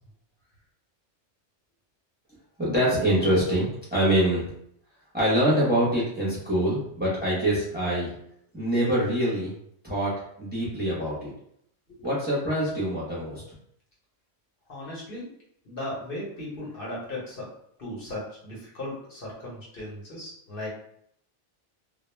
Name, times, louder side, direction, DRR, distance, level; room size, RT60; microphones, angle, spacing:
voice 1, 2.6-4.5 5.1-8.1 8.5-9.5 9.8-11.3 12.0-13.4, right 1 dB, 10° right, -7 dB, 0.6 m, -25 dB
voice 2, 14.7-15.3 15.7-17.5 17.8-20.7, left 1 dB, 50° left, -6 dB, 1.0 m, -37 dB
2.2 x 2.2 x 3.2 m, 0.70 s
omnidirectional pair, 1.2 m